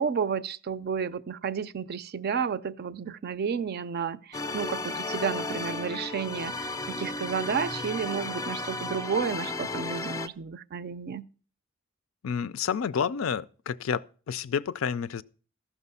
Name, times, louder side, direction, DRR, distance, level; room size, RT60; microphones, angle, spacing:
voice 1, 0.0-11.3, right 6 dB, 50° right, 0.4 m, -31 dB
sound 1, 4.3-10.3, left 2 dB, 15° left, 0.4 m, -34 dB
voice 2, 12.2-14.0 14.3-15.2, left 7 dB, 75° left, 0.4 m, -29 dB
14.0 x 5.9 x 5.5 m
head